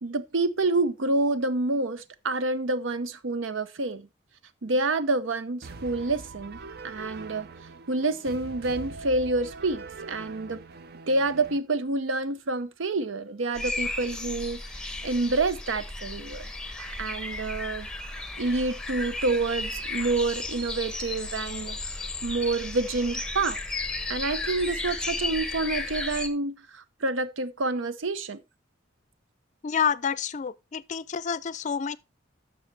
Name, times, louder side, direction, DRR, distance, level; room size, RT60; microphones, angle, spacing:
voice 1, 0.0-4.1 4.6-7.5 7.9-10.6 11.1-17.9 18.4-21.8 22.2-23.6 24.1-28.4, right 2 dB, 90° right, 0.7 m, -28 dB
sound 1, 5.6-11.6, right 3 dB, 55° right, 0.6 m, -42 dB
sound 2, 13.5-26.3, left 2 dB, 5° left, 0.7 m, -34 dB
voice 2, 29.6-32.0, left 7 dB, 40° left, 0.4 m, -28 dB
11.5 x 6.4 x 3.3 m
head